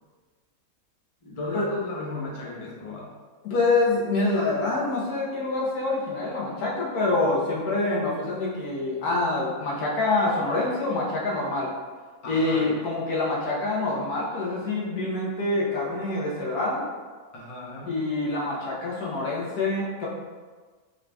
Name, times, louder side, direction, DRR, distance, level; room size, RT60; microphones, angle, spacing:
voice 1, 1.2-3.1 12.2-12.8 17.3-18.0, left 2 dB, 45° left, -4 dB, 0.4 m, -35 dB
voice 2, 3.4-11.7 12.3-16.8 17.9-20.1, left 2 dB, 75° left, -5 dB, 1.4 m, -26 dB
3.8 x 3.7 x 2.2 m, 1.4 s
omnidirectional pair, 1.6 m